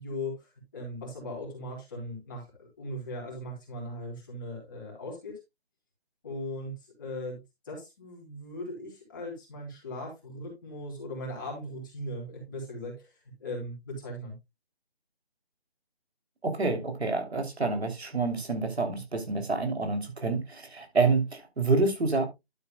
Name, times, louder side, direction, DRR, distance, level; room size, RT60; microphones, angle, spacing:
voice 1, 0.0-5.4 6.2-6.7 7.0-7.4 7.6-13.1 13.4-14.4, left 1 dB, 20° left, 3.6 m, -38 dB
voice 2, 16.4-22.2, right 3 dB, 85° right, 3.1 m, -28 dB
11.5 x 8.0 x 2.2 m
figure-of-eight pair, 175°, 31 cm